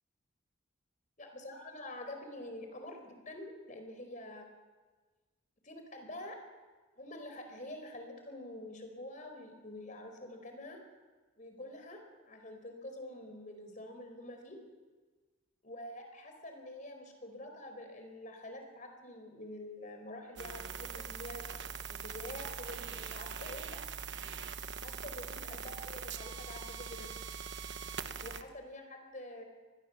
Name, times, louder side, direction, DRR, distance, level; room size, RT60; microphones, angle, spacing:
voice 1, 1.2-4.5 5.6-6.4 7.0-10.8 11.4-14.6 15.6-23.8 24.8-27.1 28.2-29.4, left 1 dB, 40° left, 5 dB, 4.6 m, -47 dB
sound 1, 20.4-28.4, right 6 dB, 55° right, 1.1 m, -42 dB
25.5 x 20.5 x 7.3 m, 1.3 s
head